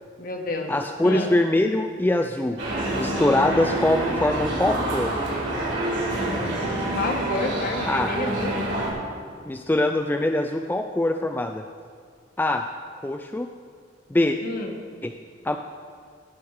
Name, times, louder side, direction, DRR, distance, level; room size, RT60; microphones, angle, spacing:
voice 1, 0.2-0.7 1.0-1.3 6.9-8.6 14.4-14.7, left 2 dB, 50° left, 2 dB, 1.4 m, -29 dB
voice 2, 0.7-2.6 2.9-5.2 7.9-8.1 9.5-11.6 12.4-12.6 13.0-13.5 14.1-14.4 15.0-15.1 15.4-15.6, left 1 dB, 10° left, 5 dB, 0.3 m, -23 dB
sound 1, 2.6-8.9, right 1 dB, 70° right, 3.4 m, -27 dB
18.0 x 6.3 x 4.8 m, 2.1 s
head